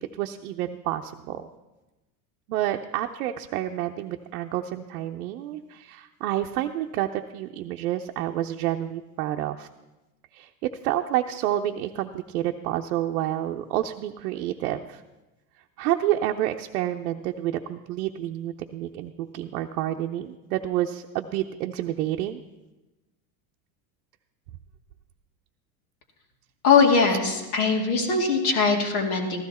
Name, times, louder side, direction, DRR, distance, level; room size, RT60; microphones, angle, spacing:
voice 1, 0.2-1.5 2.5-9.7 10.3-15.0 15.8-22.4, right 13 dB, 85° right, 3 dB, 0.7 m, -29 dB
voice 2, 26.6-29.4, left 4 dB, 80° left, 1 dB, 2.4 m, -21 dB
15.0 x 13.0 x 4.2 m, 1.1 s
supercardioid pair, 105°, 43 cm